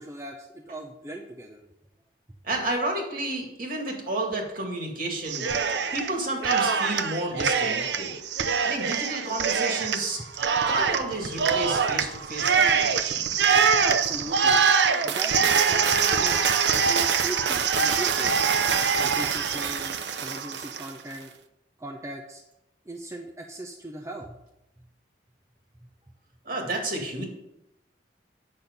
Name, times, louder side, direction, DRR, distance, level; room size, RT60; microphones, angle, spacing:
voice 1, 0.0-1.6 13.8-14.7 15.0-18.4 19.0-21.3 21.8-22.4 22.8-24.4 24.8-24.9 25.8-25.9, right 1 dB, 15° right, 1 dB, 0.6 m, -39 dB
voice 2, 2.4-5.5 5.9-8.1 8.6-10.2 10.7-13.4 26.4-27.3, right 2 dB, 55° right, 1 dB, 2.1 m, -31 dB
Cheering, 5.3-6.1 6.4-20.9, right 6 dB, 75° right, 0.6 m, -24 dB
8.7 x 6.2 x 5.3 m, 0.87 s
head